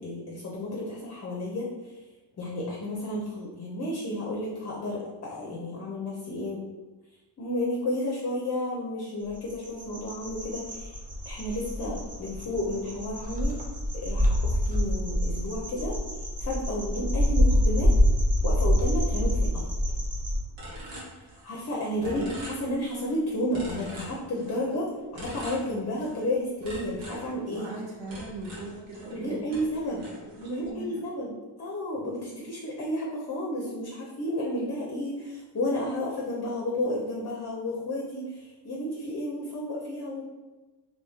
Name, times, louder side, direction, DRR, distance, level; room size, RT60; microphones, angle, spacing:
voice 1, 0.0-1.9 2.4-6.6 7.4-10.9 11.3-13.6 14.0-16.0 16.4-17.9 18.4-19.7 21.4-27.7 29.1-30.0 30.4-40.2, left 1 dB, 35° left, -3 dB, 0.6 m, -32 dB
sound 1, 9.3-20.4, equal, 20° right, 0.5 m, -26 dB
sound 2, 20.6-21.7 22.0-23.1 23.5-24.7 25.1-26.3 26.6-29.2 29.5-30.7, equal, 90° right, 1.3 m, -43 dB
voice 2, 22.0-22.4 27.5-30.0 30.4-31.0, right 2 dB, 70° right, -2 dB, 1.0 m, -39 dB
3.4 x 2.9 x 2.8 m, 1.2 s
cardioid pair, 125°, 45 cm